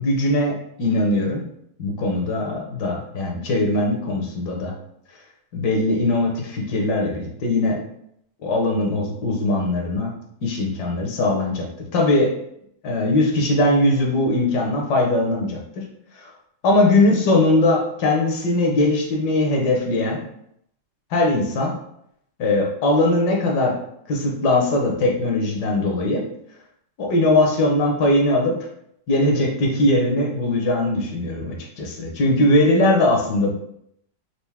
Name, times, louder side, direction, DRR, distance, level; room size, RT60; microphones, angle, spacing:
voice 1, 0.0-1.4 1.8-4.7 5.5-7.8 8.4-10.1 10.4-12.3 12.8-15.9 16.2-16.3 16.6-20.2 21.1-21.7 22.4-23.8 24.1-26.2 27.0-28.6 29.1-33.5, left 2 dB, 70° left, 0 dB, 1.3 m, -20 dB
4.6 x 2.5 x 3.4 m, 0.74 s
omnidirectional pair, 2.0 m